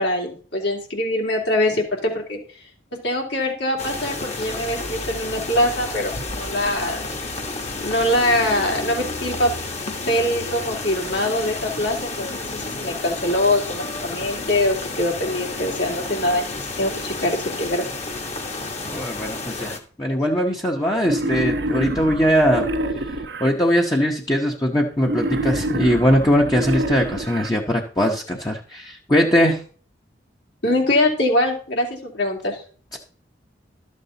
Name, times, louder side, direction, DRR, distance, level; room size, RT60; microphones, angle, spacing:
voice 1, 0.0-2.4 3.0-7.1 7.8-9.5 10.1-16.5 16.8-17.8 30.6-32.6, left 1 dB, 70° left, -1 dB, 2.9 m, -23 dB
sound 1, 3.8-19.8, left 3 dB, 35° left, 1.4 m, -31 dB
voice 2, 18.9-19.7 20.0-22.7 23.4-29.6 32.9-33.0, equal, 20° left, -1 dB, 1.0 m, -20 dB
Wild animals, 21.0-23.5 25.0-27.5, right 1 dB, 70° right, 0.9 m, -26 dB
12.5 x 7.4 x 4.0 m, 0.42 s
head